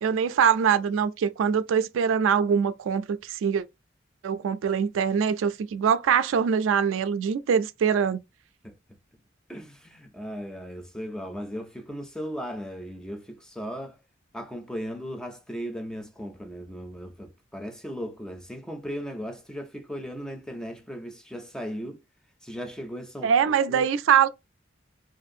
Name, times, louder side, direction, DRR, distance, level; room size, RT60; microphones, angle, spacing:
voice 1, 0.0-3.6 4.2-8.2 23.2-24.3, right 7 dB, 85° right, 0.3 m, -23 dB
voice 2, 9.5-14.0 14.3-22.0 22.4-23.9, equal, 5° left, 0.4 m, -37 dB
2.5 x 2.4 x 2.6 m
head